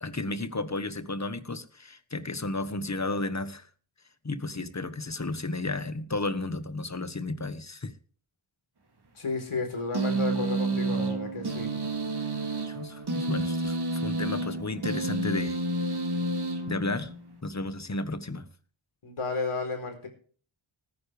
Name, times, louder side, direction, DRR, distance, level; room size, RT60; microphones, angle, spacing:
voice 1, 0.0-3.7 4.2-7.9 12.2-12.4 12.7-15.6 16.7-17.1 17.4-18.5, left 2 dB, 35° left, 11 dB, 1.4 m, -33 dB
voice 2, 9.1-11.7 19.0-20.1, left 3 dB, 80° left, 4 dB, 4.4 m, -32 dB
sound 1, 9.9-17.3, right 2 dB, 50° right, 2.6 m, -30 dB
19.0 x 9.9 x 3.4 m, 0.43 s
wide cardioid pair, 75°, 49 cm